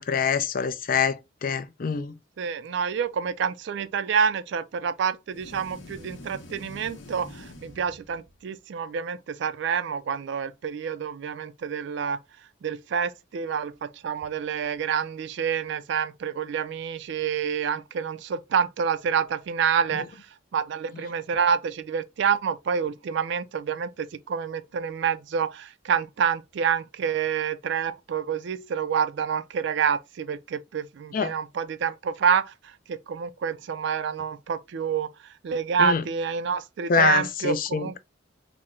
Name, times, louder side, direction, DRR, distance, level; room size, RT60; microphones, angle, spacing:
voice 1, 0.0-2.1 31.1-31.3 35.8-36.0 36.9-38.0, left 6 dB, 45° left, 0.4 m, -25 dB
voice 2, 2.4-12.2 12.6-38.0, right 7 dB, 60° right, 0.3 m, -28 dB
sound 1, 5.3-8.5, left 1 dB, 65° left, 0.8 m, -45 dB
4.2 x 2.0 x 3.6 m
head